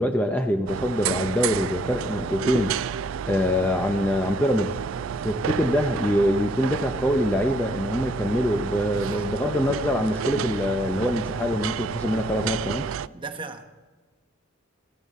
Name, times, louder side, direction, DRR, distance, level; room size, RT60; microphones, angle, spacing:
voice 1, 0.0-2.9 3.3-4.8 5.2-12.9, left 1 dB, 10° left, 5 dB, 0.5 m, -24 dB
sound 1, 0.7-13.1, right 8 dB, 80° right, 0.3 m, -31 dB
voice 2, 8.9-9.3 13.1-13.6, right 4 dB, 25° right, 5 dB, 1.1 m, -37 dB
14.5 x 11.0 x 4.1 m, 1.3 s
head